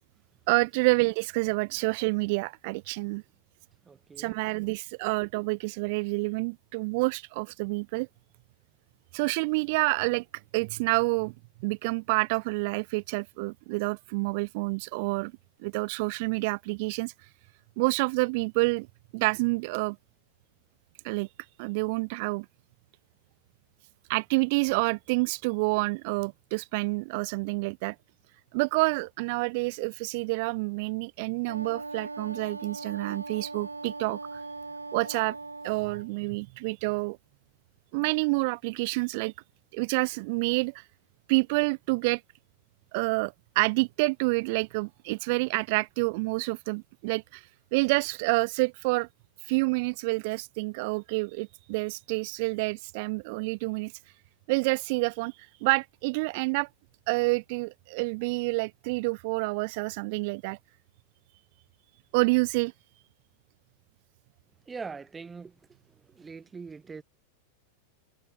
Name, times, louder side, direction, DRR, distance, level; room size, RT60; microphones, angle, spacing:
voice 1, 0.5-3.2 4.2-8.1 9.1-10.2 10.5-11.3 11.6-15.3 15.6-17.1 17.8-18.9 19.1-20.0 21.0-21.3 21.6-22.5 24.1-28.0 28.5-34.4 34.9-35.4 35.6-37.2 37.9-39.3 39.7-40.8 41.3-42.2 42.9-47.5 47.7-49.1 49.4-53.9 54.5-55.3 55.6-56.7 57.1-60.6 62.1-62.7, right 27 dB, 45° right, 3.7 m, -28 dB
voice 2, 3.9-4.3 64.7-65.5 66.2-67.0, right 5 dB, 15° right, 5.6 m, -41 dB
Wind instrument woodwind instrument, 31.4-36.1, right 3 dB, 80° right, 3.2 m, -40 dB
open air
figure-of-eight pair, 90°, 0 cm